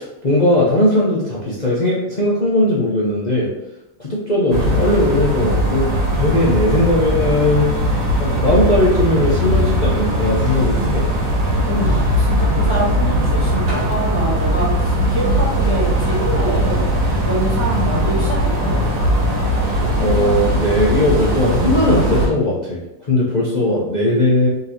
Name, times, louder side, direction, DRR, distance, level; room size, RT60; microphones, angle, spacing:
voice 1, 0.0-3.5 4.0-7.7 8.2-11.0 19.6-19.7 20.0-22.8 23.1-24.5, left 1 dB, 40° left, -6 dB, 0.7 m, -18 dB
sound 1, 4.5-22.3, equal, 65° right, 1.8 m, -19 dB
voice 2, 11.7-16.8 17.2-19.1, equal, 15° right, -6 dB, 1.4 m, -25 dB
4.2 x 3.0 x 4.0 m, 0.88 s
omnidirectional pair, 1.8 m